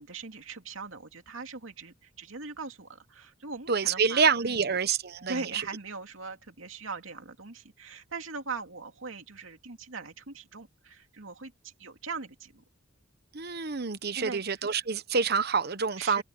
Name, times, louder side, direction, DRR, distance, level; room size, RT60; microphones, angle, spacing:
voice 1, 0.0-4.7 5.2-12.6 14.1-14.6 16.0-16.2, right 4 dB, 85° right, 2.6 m, -41 dB
voice 2, 3.7-5.6 13.3-16.2, right 5 dB, 55° right, 1.1 m, -27 dB
head